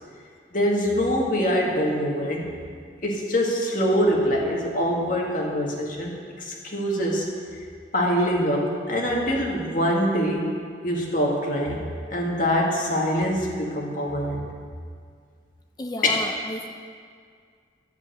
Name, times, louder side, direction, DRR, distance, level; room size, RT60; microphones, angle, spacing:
voice 1, 0.5-2.5 3.0-7.3 7.9-10.5 10.8-14.5 16.0-16.3, equal, 45° left, -1 dB, 1.9 m, -24 dB
voice 2, 15.8-16.7, left 1 dB, 20° left, 6 dB, 0.5 m, -32 dB
11.0 x 7.6 x 7.9 m, 2.1 s
head